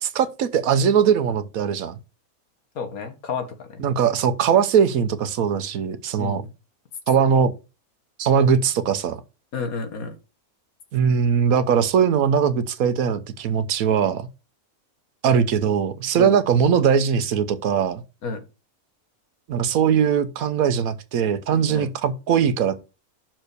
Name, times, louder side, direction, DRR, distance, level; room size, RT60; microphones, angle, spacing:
voice 1, 0.0-1.9 3.8-6.4 7.1-7.5 8.2-9.2 10.9-14.3 15.2-18.0 19.5-22.8, right 7 dB, 80° right, 1.2 m, -20 dB
voice 2, 2.8-3.8 6.2-6.5 9.5-10.2 16.2-16.4 18.2-18.4 21.7-21.9, left 4 dB, 80° left, 1.7 m, -30 dB
6.3 x 4.5 x 6.6 m
omnidirectional pair, 1.5 m